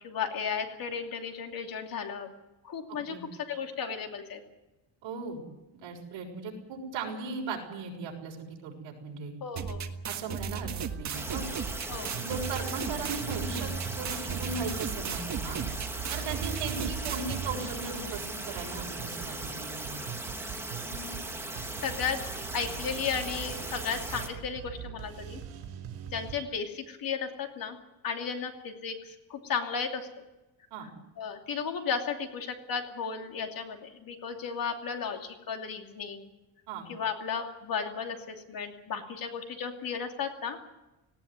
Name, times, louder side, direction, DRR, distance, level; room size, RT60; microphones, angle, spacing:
voice 1, 0.0-2.3 2.6-3.2 3.5-4.4 9.4-9.9 11.9-12.1 20.8-21.2 21.6-22.2 22.5-25.4 26.1-27.8 28.0-30.2 31.2-36.3 36.9-40.6, left 6 dB, 45° left, 4 dB, 2.8 m, -34 dB
voice 2, 5.0-5.4 5.8-9.3 10.1-11.4 12.1-13.7 14.0-15.6 16.1-20.0 30.7-30.9 36.7-36.9, right 4 dB, 65° right, 1 dB, 6.6 m, -37 dB
sound 1, 9.6-17.6, right 6 dB, 35° right, 1.6 m, -36 dB
sound 2, 10.4-26.4, right 8 dB, 85° right, 5.0 m, -42 dB
sound 3, 11.1-24.3, right 2 dB, 5° right, 2.3 m, -38 dB
19.0 x 17.5 x 9.6 m, 1.0 s
cardioid pair, 155°, 48 cm